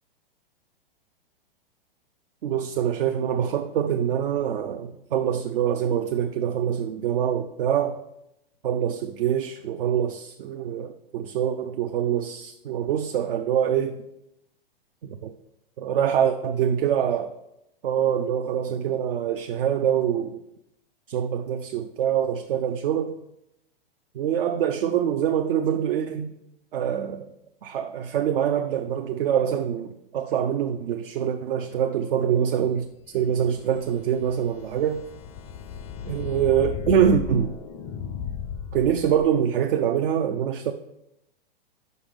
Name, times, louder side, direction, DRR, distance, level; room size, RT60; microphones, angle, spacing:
voice 1, 2.4-8.0 8.6-14.0 15.0-15.3 15.8-17.3 17.8-20.4 21.1-23.2 24.1-26.3 26.7-27.3 27.6-32.9 33.1-35.0 36.1-37.6 38.7-40.7, right 9 dB, 70° right, 6 dB, 0.6 m, -25 dB
sound 1, 33.1-39.4, left 7 dB, 25° left, 0.4 m, -36 dB
5.5 x 5.2 x 5.1 m, 0.84 s
hypercardioid pair, 115°, 30 cm